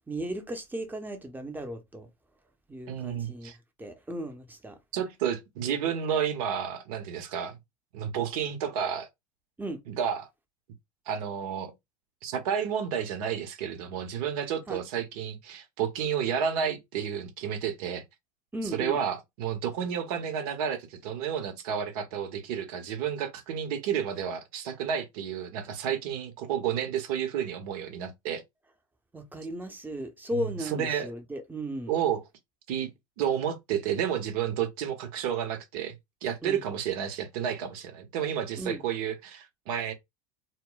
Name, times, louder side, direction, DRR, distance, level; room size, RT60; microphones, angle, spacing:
voice 1, 0.1-2.1 2.7-3.5 3.8-4.8 9.6-9.8 14.7-14.8 18.5-19.0 29.1-31.9 36.4-36.6 38.6-38.8, equal, 10° right, 0.8 m, -36 dB
voice 2, 2.9-3.6 4.9-7.6 7.9-9.1 9.9-10.3 11.1-11.7 12.2-18.0 18.6-28.4 30.3-31.1 31.9-32.2 32.7-39.9, right 8 dB, 65° right, 0.9 m, -31 dB
2.1 x 2.1 x 3.8 m
hypercardioid pair, 85°, 20 cm